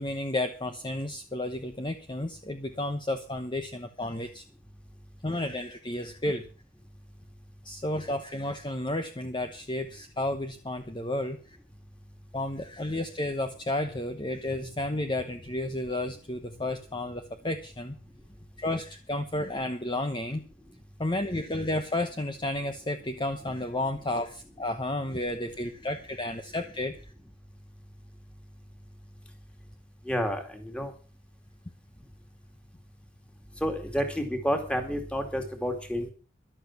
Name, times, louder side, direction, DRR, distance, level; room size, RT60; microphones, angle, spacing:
voice 1, 0.0-4.4 5.2-6.4 7.6-11.4 12.3-17.9 18.6-20.4 21.0-27.0, left 1 dB, 25° left, 7 dB, 1.0 m, -32 dB
voice 2, 30.0-30.9 33.6-36.1, equal, 5° left, 5 dB, 2.5 m, -30 dB
13.5 x 12.0 x 6.0 m, 0.38 s
head